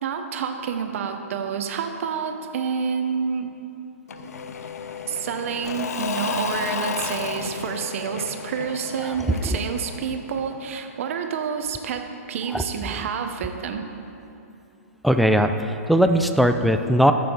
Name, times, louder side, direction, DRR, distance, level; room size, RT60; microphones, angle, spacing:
voice 1, 0.0-3.5 5.1-13.9, right 6 dB, 60° right, 6 dB, 0.9 m, -28 dB
Engine / Mechanisms / Drill, 4.1-10.8, left 6 dB, 80° left, 0.6 m, -32 dB
voice 2, 12.5-13.0 15.0-17.1, equal, ahead, 7 dB, 0.3 m, -19 dB
15.0 x 6.7 x 3.9 m, 2.8 s
hypercardioid pair, 145°, 8 cm